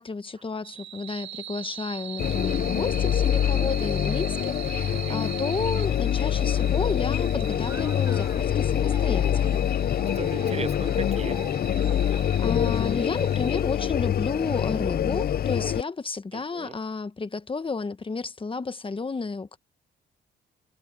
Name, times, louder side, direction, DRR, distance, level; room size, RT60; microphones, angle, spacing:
voice 1, 0.0-9.7 12.1-19.6, left 4 dB, 25° left, 1.3 m, -32 dB
sound 1, 0.6-13.6, right 11 dB, 70° right, 1.2 m, -42 dB
sound 2, 2.2-15.8, left 10 dB, 50° left, 0.6 m, -25 dB
Laughter, 7.5-8.5 8.8-9.6 9.9-13.3, right 2 dB, 15° right, 5.4 m, -46 dB
voice 2, 10.0-11.4 16.3-16.8, right 5 dB, 30° right, 1.1 m, -37 dB
cardioid pair, 90°, 20 cm